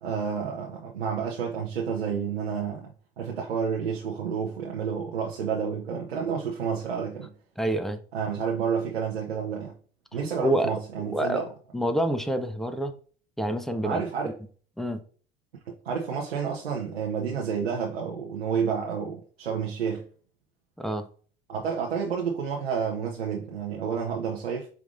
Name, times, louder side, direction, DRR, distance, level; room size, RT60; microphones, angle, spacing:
voice 1, 0.0-2.9 3.2-7.3 8.1-9.7 10.1-11.5 13.8-14.3 15.7-20.0 21.5-24.7, right 6 dB, 90° right, 0.7 m, -30 dB
voice 2, 7.6-8.0 10.4-10.7 11.1-11.4 11.7-12.9 13.4-14.3 14.8-15.0 20.8-21.1, right 1 dB, ahead, 0.5 m, -27 dB
5.1 x 3.5 x 2.5 m
hypercardioid pair, 75°, 30 cm